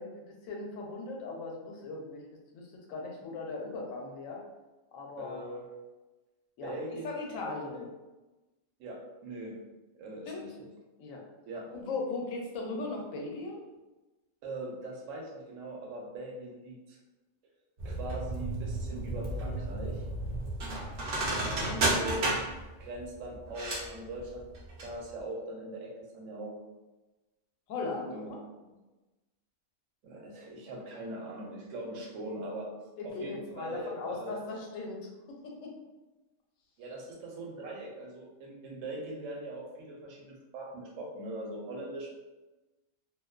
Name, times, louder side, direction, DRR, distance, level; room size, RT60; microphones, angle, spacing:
voice 1, 0.0-2.2 2.5-2.6 2.9-4.4 4.9-5.4 6.6-6.7 7.0-7.8 10.3-10.4 11.0-11.2 11.7-13.6 21.4-21.9 27.7-28.4 33.0-35.7, left 3 dB, 80° left, -1 dB, 1.0 m, -38 dB
voice 2, 5.2-5.7 6.6-7.1 7.4-7.9 8.8-9.6 9.9-10.7 11.5-11.7 14.4-17.0 17.8-20.0 21.9-22.4 22.8-24.5 24.8-26.6 27.9-28.3 28.7-28.8 30.0-32.7 33.0-34.4 36.8-42.1, right 1 dB, 75° right, -1 dB, 1.0 m, -41 dB
sound 1, 17.8-24.9 25.2-25.3, right 2 dB, 60° right, 0.5 m, -33 dB
2.5 x 2.1 x 2.3 m, 1.1 s
omnidirectional pair, 1.4 m